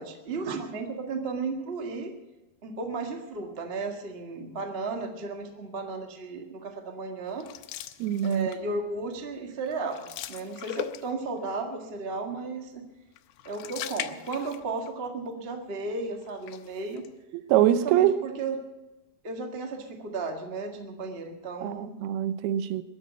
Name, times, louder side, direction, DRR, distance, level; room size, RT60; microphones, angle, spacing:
voice 1, 0.0-2.1 2.6-7.5 8.2-12.8 13.4-17.0 17.7-18.6 19.2-21.9, right 3 dB, 70° right, 0.5 m, -34 dB
sound 1, 7.4-8.7 9.1-9.4 9.6-11.4 13.1-14.9 15.3-15.4 16.2-17.1, left 13 dB, 80° left, 2.5 m, -40 dB
voice 2, 8.0-8.5 17.5-18.2 21.6-22.8, right 11 dB, 90° right, 2.8 m, -24 dB
22.0 x 7.6 x 8.0 m
omnidirectional pair, 4.4 m